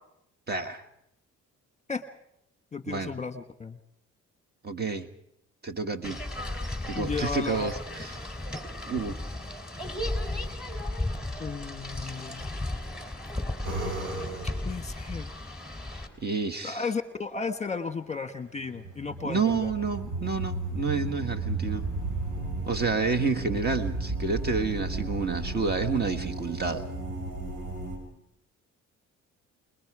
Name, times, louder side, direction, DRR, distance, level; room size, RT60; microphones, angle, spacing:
voice 1, 0.5-0.9 2.9-3.2 4.6-5.1 5.6-6.2 6.9-8.1 8.8-9.2 15.9-16.8 19.2-21.8 22.7-26.9, right 4 dB, 35° right, 6 dB, 1.5 m, -29 dB
voice 2, 2.7-3.8 6.9-7.8 11.4-12.7 14.6-15.3 16.6-19.7, left 4 dB, 20° left, 9 dB, 1.4 m, -34 dB
sound 1, 6.0-16.1, left 1 dB, ahead, 3.4 m, -35 dB
sound 2, 13.6-14.8 18.5-28.0, right 2 dB, 85° right, 6.6 m, -34 dB
28.0 x 21.5 x 4.9 m, 0.80 s
cardioid pair, 90°, 30 cm